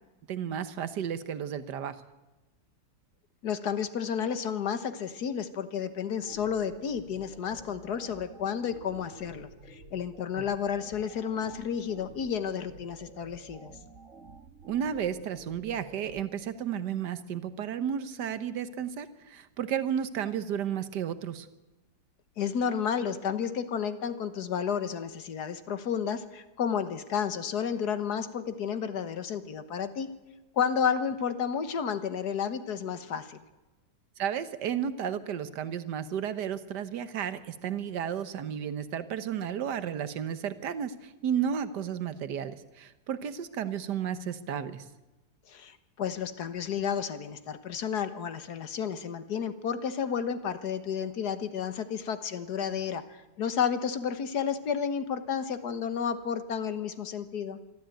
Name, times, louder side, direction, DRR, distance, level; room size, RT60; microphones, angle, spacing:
voice 1, 0.3-2.0 10.3-10.4 14.6-21.5 34.2-44.8, right 8 dB, 75° right, 13 dB, 1.7 m, -33 dB
voice 2, 3.4-13.7 22.4-30.1 30.5-33.4 45.5-57.6, left 7 dB, 65° left, 11 dB, 1.7 m, -31 dB
sound 1, 6.3-16.2, right 3 dB, 45° right, 1.9 m, -51 dB
25.0 x 13.5 x 9.1 m, 1.1 s
omnidirectional pair, 1.9 m